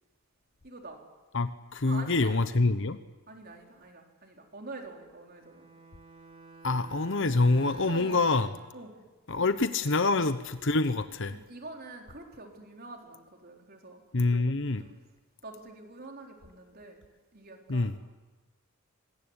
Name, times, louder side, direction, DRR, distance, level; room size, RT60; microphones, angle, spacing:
voice 1, 0.6-1.0 1.9-2.4 3.3-5.7 7.8-8.2 8.7-8.9 11.3-14.0 14.8-15.0 15.4-17.0 17.3-18.0, right 2 dB, 45° right, 2 dB, 4.4 m, -46 dB
voice 2, 1.3-3.0 6.6-8.5 9.3-11.4 14.1-14.8 17.7-18.0, left 3 dB, 55° left, 11 dB, 1.0 m, -26 dB
Bowed string instrument, 5.3-8.7, right 4 dB, 25° right, 3.3 m, -49 dB
26.0 x 21.5 x 9.9 m, 1.2 s
head